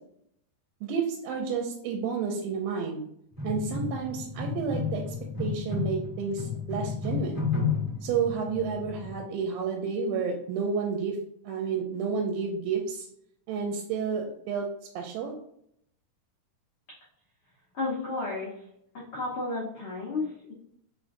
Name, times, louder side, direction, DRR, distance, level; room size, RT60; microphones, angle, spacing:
voice 1, 0.8-3.0 3.4-5.0 5.4-7.5 8.0-11.2 11.5-13.1 13.5-14.7 15.0-15.3, right 6 dB, 85° right, 1 dB, 2.3 m, -30 dB
sound 1, 3.4-9.1, left 5 dB, 30° left, 0.6 m, -32 dB
voice 2, 17.7-18.6 18.9-20.5, left 3 dB, 85° left, -6 dB, 1.1 m, -32 dB
5.0 x 3.7 x 2.5 m, 0.72 s
omnidirectional pair, 4.0 m